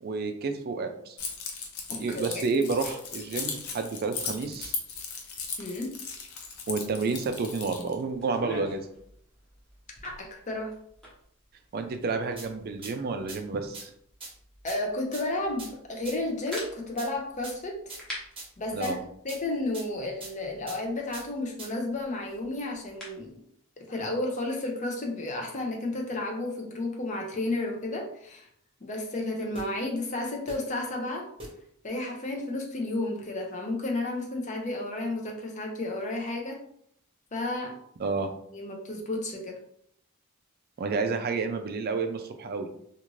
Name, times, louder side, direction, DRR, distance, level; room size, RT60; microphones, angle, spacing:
voice 1, 0.0-1.2 1.9-4.7 6.7-8.9 11.7-13.9 18.7-19.0 38.0-38.3 40.8-42.7, right 4 dB, 45° right, 7 dB, 0.3 m, -30 dB
Keys jangling, 1.2-7.9, left 5 dB, 80° left, 0.6 m, -37 dB
voice 2, 1.9-2.4 5.6-6.0 10.0-10.7 14.6-18.0 18.6-19.0 19.2-23.4 23.8-28.5 28.8-31.3 31.8-36.6 37.3-37.8 38.5-39.6, left 2 dB, 35° left, 1 dB, 0.5 m, -32 dB
sound 1, 8.1-23.3, equal, 5° left, 0.9 m, -48 dB
sound 2, 12.4-12.5 12.8-12.9 13.3-13.4 13.7-13.8 14.2-14.3 14.7-14.8 15.1-15.2 15.6-15.7 16.1-16.2 16.5-16.6 17.0-17.1 17.4-17.5 17.9-18.0 18.4-18.5 18.8-18.9 19.3-19.4 19.7-19.8 20.2-20.3 20.7-20.8 21.1-21.2 21.6-21.7 29.6-29.7 30.5-30.6 31.4-31.5, right 2 dB, 25° right, 0.9 m, -40 dB
2.5 x 2.5 x 3.0 m, 0.69 s
head